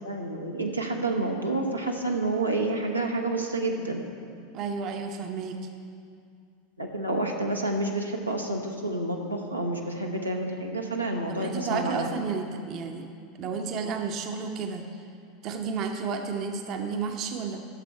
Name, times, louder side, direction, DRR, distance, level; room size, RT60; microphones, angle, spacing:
voice 1, 0.0-4.0 6.8-12.1, right 2 dB, 90° right, 0 dB, 0.9 m, -29 dB
voice 2, 4.5-5.7 11.3-13.1 13.4-15.0 15.4-17.6, right 5 dB, 40° right, 5 dB, 0.8 m, -32 dB
12.0 x 6.9 x 4.6 m, 2.3 s
figure-of-eight pair, 80°, 0 cm